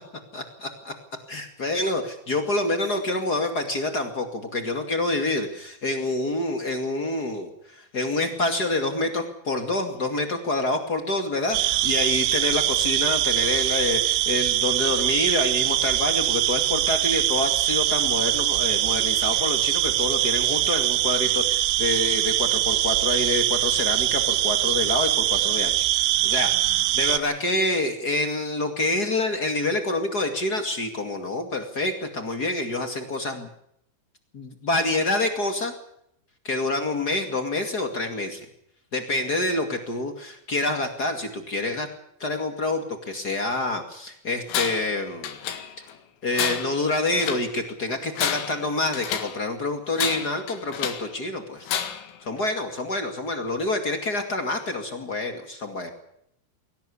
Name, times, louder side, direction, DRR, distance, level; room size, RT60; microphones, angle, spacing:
voice 1, 0.3-0.9 1.3-26.5 26.9-33.5 34.3-35.7 36.4-38.4 38.9-41.9 42.2-45.4 46.2-51.7 52.2-55.9, left 2 dB, 40° left, 6 dB, 1.4 m, -27 dB
sound 1, 11.5-27.2, right 14 dB, 80° right, 3.4 m, -23 dB
Tools, 44.5-44.9 45.2-45.9 46.3-47.5 48.0-49.4 49.9-51.1 51.7-52.2, left 9 dB, 75° left, 4.3 m, -30 dB
22.5 x 18.0 x 7.1 m, 0.74 s
omnidirectional pair, 5.6 m